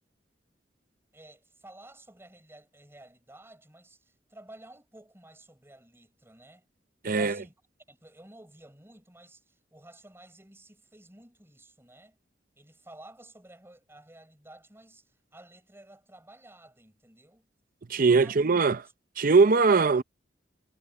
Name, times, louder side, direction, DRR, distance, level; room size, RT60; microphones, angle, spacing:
voice 1, 1.1-6.7 7.0-7.5 7.9-12.2 12.6-15.0 15.3-17.5 17.9-18.4, right 1 dB, 15° right, 5.2 m, -52 dB
voice 2, 7.0-7.4 17.9-18.8 19.2-20.0, right 4 dB, 50° right, 0.6 m, -21 dB
head